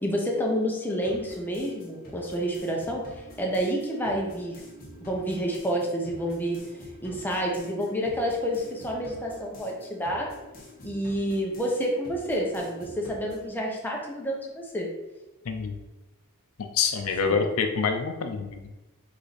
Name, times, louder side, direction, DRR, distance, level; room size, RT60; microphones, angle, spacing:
voice 1, 0.0-3.0 3.4-4.6 5.0-6.6 7.0-10.3 10.8-14.9 17.2-17.4, equal, 10° left, -2 dB, 0.6 m, -29 dB
sound 1, 1.0-13.5, equal, 40° left, 1.2 m, -47 dB
voice 2, 15.5-15.8 16.6-18.7, left 5 dB, 70° left, 5 dB, 0.5 m, -27 dB
4.8 x 2.6 x 4.1 m, 1.1 s
head